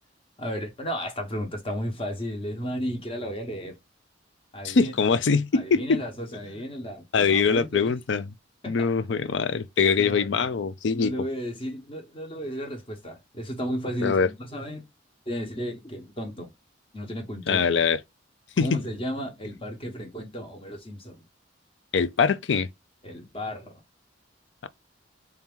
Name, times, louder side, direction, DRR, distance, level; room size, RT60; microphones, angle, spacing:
voice 1, 0.4-3.8 4.5-5.1 5.5-7.9 8.6-8.9 10.0-10.6 10.9-14.8 15.3-16.5 16.9-17.6 18.6-21.2 23.0-23.8, equal, 30° left, 1.1 m, -34 dB
voice 2, 4.6-6.0 7.1-8.3 8.7-11.1 14.0-14.3 17.5-18.0 18.6-18.8 21.9-22.7, left 5 dB, 70° left, 0.5 m, -23 dB
3.4 x 2.8 x 3.5 m
head